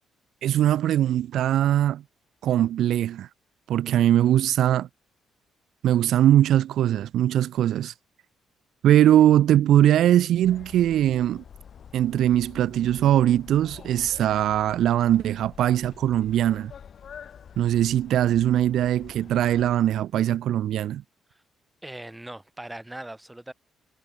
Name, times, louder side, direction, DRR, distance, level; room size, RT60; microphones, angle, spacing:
voice 1, 0.4-2.0 2.4-3.3 3.7-4.9 5.8-7.9 8.8-11.4 11.9-16.7 17.6-21.0, right 12 dB, 75° right, 0.5 m, -21 dB
sound 1, 10.4-19.8, left 8 dB, 55° left, 5.0 m, -46 dB
voice 2, 21.8-23.5, right 1 dB, 10° right, 5.8 m, -39 dB
cardioid pair, 90°, 0 cm